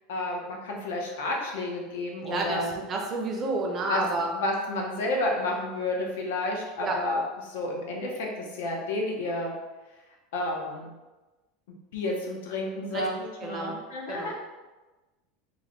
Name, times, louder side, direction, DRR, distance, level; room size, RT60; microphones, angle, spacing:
voice 1, 0.1-2.7 3.9-4.0 4.3-9.5 10.3-10.9 11.9-14.3, left 2 dB, 85° left, 0 dB, 0.8 m, -31 dB
voice 2, 2.2-4.3 6.8-7.0 12.9-13.1 13.4-13.8 14.1-14.3, right 3 dB, 20° right, 0 dB, 0.4 m, -30 dB
3.2 x 2.2 x 3.8 m, 1.1 s
supercardioid pair, 175°, 0 cm